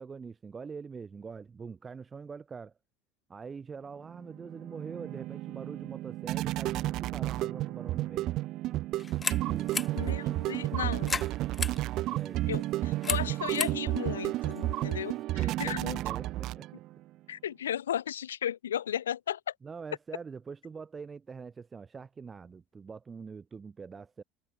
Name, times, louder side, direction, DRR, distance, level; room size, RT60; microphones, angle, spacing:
voice 1, 0.0-2.7 3.3-8.3 9.4-9.7 12.0-12.4 15.4-16.7 19.6-24.2, right 5 dB, 25° right, 2.9 m, -44 dB
sound 1, 4.1-17.0, right 16 dB, 50° right, 0.8 m, -32 dB
sound 2, 9.0-15.2, left 4 dB, 25° left, 1.6 m, -38 dB
voice 2, 9.9-11.2 12.5-16.0 17.3-19.5, left 10 dB, 75° left, 0.5 m, -35 dB
figure-of-eight pair, 65°, 0 cm